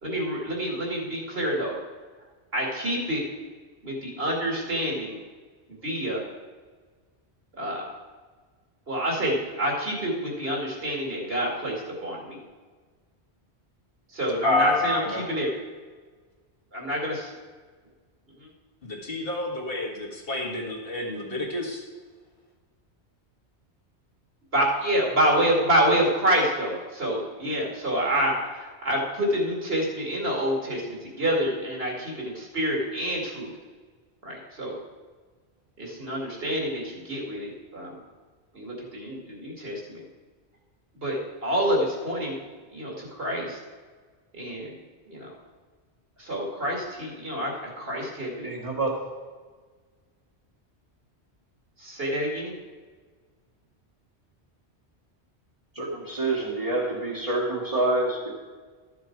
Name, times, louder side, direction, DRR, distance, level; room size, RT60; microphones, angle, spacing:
voice 1, 0.0-1.7 2.5-3.2 3.8-5.2 5.8-6.2 7.6-7.8 8.9-12.4 14.1-15.5 16.7-17.3 18.4-18.5 24.5-33.5 34.2-34.8 35.8-38.0 38.5-40.0 41.0-42.4 42.7-43.6 44.3-44.8 45.1-45.3 46.2-48.5 51.8-52.6, equal, 60° right, -2 dB, 2.6 m, -27 dB
voice 2, 14.4-15.2 18.8-21.8, left 2 dB, 55° left, -1 dB, 2.0 m, -28 dB
voice 3, 48.4-48.9 55.7-58.3, right 2 dB, 30° right, -5 dB, 1.5 m, -27 dB
13.0 x 7.1 x 4.6 m, 1.4 s
omnidirectional pair, 1.1 m